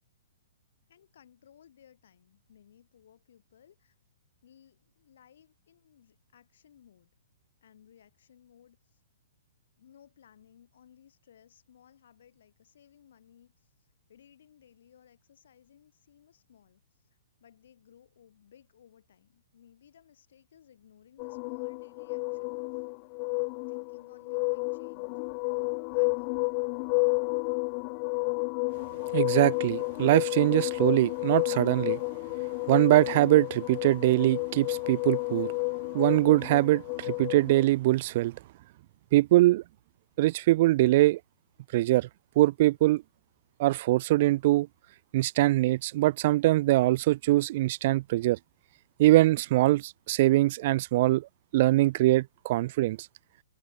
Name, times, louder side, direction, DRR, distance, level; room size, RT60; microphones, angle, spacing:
voice 1, 0.9-4.0 4.4-7.1 7.6-9.0 9.8-22.9 23.7-25.2 25.5-26.4, left 9 dB, 70° left, 7.4 m, -60 dB
sound 1, 21.2-37.6, left 40 dB or more, 40° left, 1.2 m, -31 dB
voice 2, 29.1-32.0 32.7-35.5 35.9-38.4 39.1-39.6 40.2-41.2 41.7-42.1 42.4-43.0 43.6-44.7 45.1-48.4 49.0-51.3 51.5-53.0, right 17 dB, 50° right, 0.5 m, -23 dB
hypercardioid pair, 135°, 0 cm